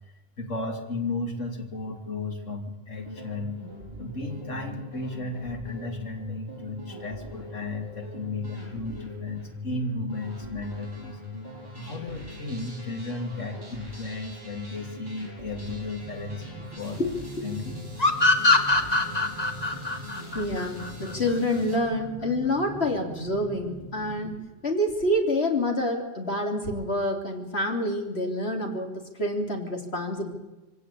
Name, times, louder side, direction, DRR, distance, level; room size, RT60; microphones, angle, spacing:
voice 1, 0.4-3.6 4.0-11.2 11.8-17.0 17.4-17.8, left 2 dB, 80° left, 3 dB, 3.2 m, -34 dB
sound 1, 2.9-21.8, left 2 dB, 15° right, 8.2 m, -42 dB
sound 2, 16.0-24.4, right 1 dB, 10° left, 5.2 m, -43 dB
sound 3, 18.0-21.4, left 2 dB, 30° left, 2.1 m, -22 dB
voice 2, 20.3-24.4 24.6-30.3, left 1 dB, 55° left, 3 dB, 3.6 m, -27 dB
23.5 x 18.0 x 8.5 m, 1.1 s
omnidirectional pair, 1.3 m